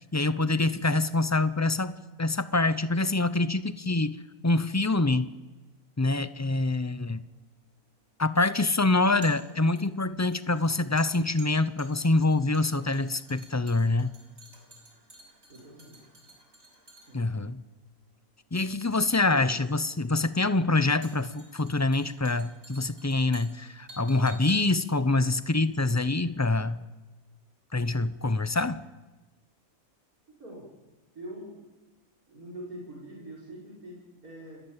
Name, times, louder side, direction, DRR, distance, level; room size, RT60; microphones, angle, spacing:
voice 1, 0.1-4.2 4.4-5.3 6.0-7.2 8.2-14.1 17.1-17.6 18.5-26.8 27.7-28.9, left 2 dB, 20° left, 13 dB, 0.5 m, -25 dB
sound 1, 7.1-26.3 26.6-26.7, right 2 dB, 65° right, 6.3 m, -53 dB
voice 2, 15.5-16.0 17.0-17.2 19.2-19.5 30.4-30.7 31.1-31.6 32.3-34.6, right 1 dB, 85° right, -4 dB, 6.0 m, -43 dB
29.0 x 19.5 x 7.4 m, 1.2 s
omnidirectional pair, 1.5 m